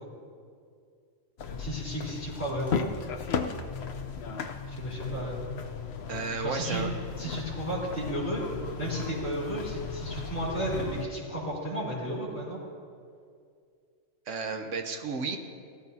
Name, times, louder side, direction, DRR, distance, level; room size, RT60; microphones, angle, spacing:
sound 1, 1.4-11.0, left 6 dB, 60° left, 0.9 m, -36 dB
voice 1, 1.6-2.8 4.7-5.5 6.4-6.8 7.2-8.4 8.8-12.6, right 1 dB, 10° left, -8 dB, 3.6 m, -33 dB
voice 2, 6.1-6.9 14.3-15.4, right 5 dB, 70° right, 6 dB, 1.3 m, -33 dB
17.5 x 13.5 x 2.7 m, 2.3 s
omnidirectional pair, 1.3 m